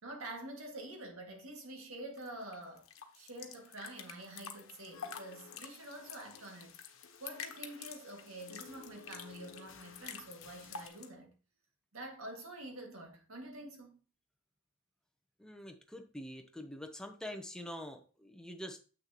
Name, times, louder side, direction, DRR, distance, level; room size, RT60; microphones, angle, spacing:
voice 1, 0.0-2.9 3.1-6.8 7.2-11.3 11.9-14.0, right 1 dB, 85° right, 2.0 m, -47 dB
sound 1, 2.2-11.1, left 7 dB, 85° left, 1.1 m, -49 dB
sound 2, 4.9-10.9, left 5 dB, 60° left, 0.8 m, -57 dB
voice 2, 15.4-18.8, equal, 5° left, 0.8 m, -45 dB
7.6 x 6.4 x 2.9 m
head